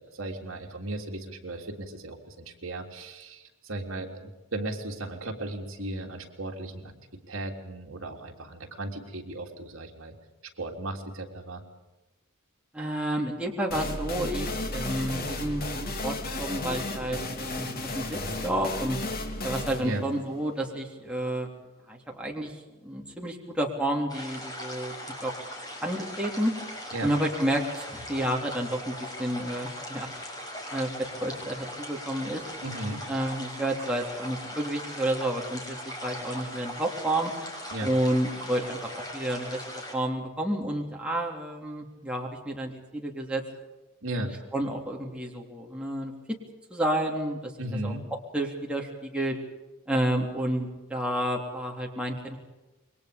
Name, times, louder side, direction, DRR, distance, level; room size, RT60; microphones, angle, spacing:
voice 1, 0.0-6.9 7.3-10.1 10.6-11.6 19.8-20.0 26.9-27.1 32.6-33.0 37.7-37.9 44.0-44.3 47.6-48.1, right 1 dB, 65° right, 2 dB, 3.4 m, -36 dB
voice 2, 12.7-19.0 19.4-21.5 21.9-22.5 22.8-25.3 25.8-26.5 27.0-30.1 30.7-30.9 31.2-32.4 33.1-37.3 37.8-43.4 44.5-46.1 46.7-47.5 47.8-47.9 48.3-49.4 49.9-52.4, right 1 dB, 5° right, -1 dB, 3.3 m, -30 dB
sound 1, 13.7-21.2, left 2 dB, 45° left, 2.7 m, -34 dB
sound 2, 24.1-39.9, left 1 dB, 20° left, 6.0 m, -39 dB
28.0 x 23.0 x 5.3 m, 1.1 s
head